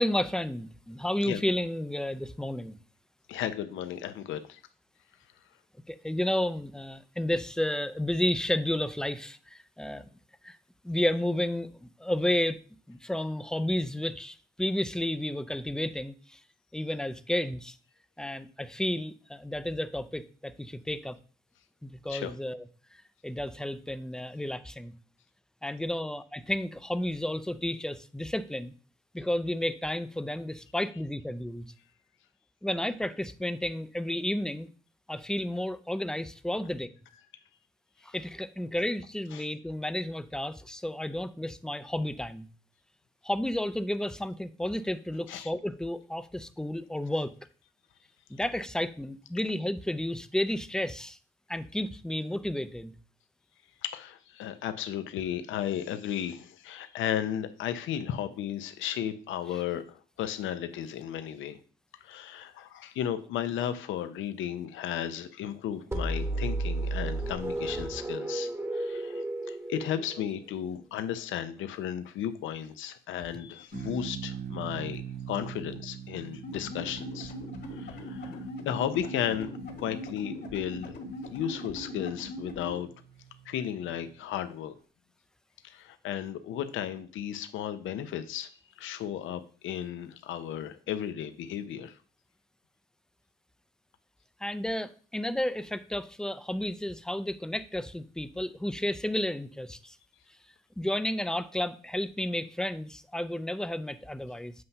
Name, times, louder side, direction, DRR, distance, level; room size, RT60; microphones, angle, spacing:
voice 1, 0.0-2.8 5.9-10.1 10.4-10.6 10.8-12.6 12.9-16.4 16.7-17.8 18.2-21.2 21.8-22.7 23.2-24.9 25.6-28.7 29.1-31.7 32.6-34.7 35.1-36.9 38.0-42.5 43.2-47.3 48.3-51.2 51.5-52.9 59.5-59.6 94.4-100.0 100.8-104.5, left 1 dB, 5° left, 12 dB, 0.4 m, -32 dB
voice 2, 3.3-4.6 22.1-22.3 39.3-39.5 45.3-45.5 53.8-61.6 62.0-75.0 75.3-77.3 77.7-79.5 79.8-80.9 81.3-82.9 83.5-84.7 85.6-88.5 88.8-92.0, left 10 dB, 80° left, 10 dB, 0.6 m, -34 dB
sound 1, 65.9-70.7, right 2 dB, 15° right, 1.0 m, -33 dB
sound 2, 73.7-84.2, right 8 dB, 50° right, 1.0 m, -44 dB
sound 3, 76.4-82.8, left 1 dB, 55° left, 1.7 m, -40 dB
7.8 x 2.8 x 5.4 m, 0.41 s
cardioid pair, 90°, 20 cm